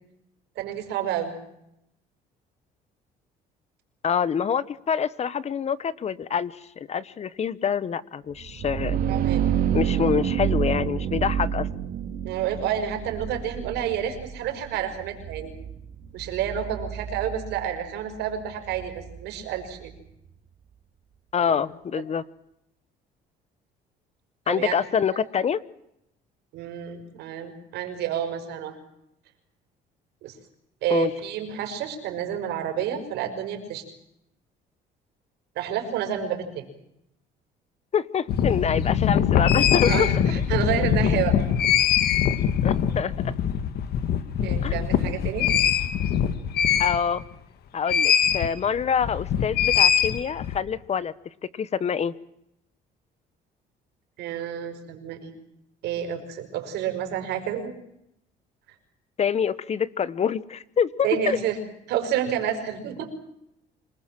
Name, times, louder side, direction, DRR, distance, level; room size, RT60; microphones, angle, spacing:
voice 1, 0.6-1.3 9.1-9.5 12.2-15.5 16.1-19.9 21.4-21.6 24.5-24.8 25.1-25.2 26.5-28.7 30.2-30.4 30.8-33.8 35.6-36.7 39.9-41.4 44.4-45.5 54.2-55.3 55.8-57.8 61.0-61.6 61.9-63.3, right 9 dB, 85° right, 6 dB, 5.7 m, -29 dB
voice 2, 4.0-9.0 9.7-11.7 21.3-22.2 24.5-25.6 30.9-31.1 37.9-40.1 42.6-43.3 44.6-44.8 46.8-47.2 47.7-51.1 51.5-52.1 59.2-61.4, left 7 dB, 40° left, 18 dB, 1.1 m, -26 dB
sound 1, 8.4-20.0, right 9 dB, 60° right, 2.4 m, -29 dB
sound 2, 38.3-47.3 47.9-48.5 48.8-50.6, left 8 dB, 70° left, 2.0 m, -22 dB
27.0 x 20.0 x 7.6 m, 0.78 s
cardioid pair, 110°, 17 cm